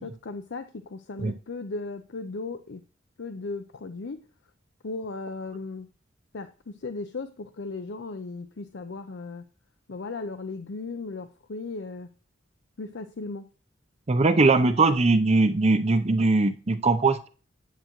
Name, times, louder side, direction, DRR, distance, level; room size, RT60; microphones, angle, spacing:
voice 1, 0.0-2.8 3.2-4.2 4.8-5.9 6.3-9.5 9.9-12.1 12.8-13.5, left 3 dB, 65° left, 8 dB, 0.6 m, -36 dB
voice 2, 14.1-17.3, right 3 dB, 35° right, 10 dB, 0.7 m, -21 dB
9.3 x 7.7 x 3.0 m, 0.38 s
head